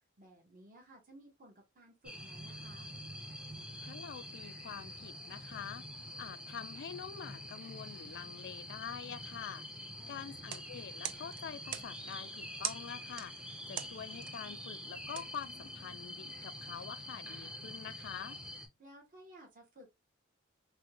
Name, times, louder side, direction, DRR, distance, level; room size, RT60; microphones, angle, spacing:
voice 1, 0.2-2.9 10.0-10.5 18.8-19.9, right 1 dB, 40° right, 1.0 m, -57 dB
sound 1, 2.0-18.7, left 1 dB, 5° right, 0.6 m, -46 dB
voice 2, 3.8-5.9 6.2-9.7 10.1-18.4, left 8 dB, 55° left, 0.4 m, -46 dB
sound 2, 10.3-16.1, right 10 dB, 60° right, 0.4 m, -46 dB
3.4 x 2.2 x 2.9 m
head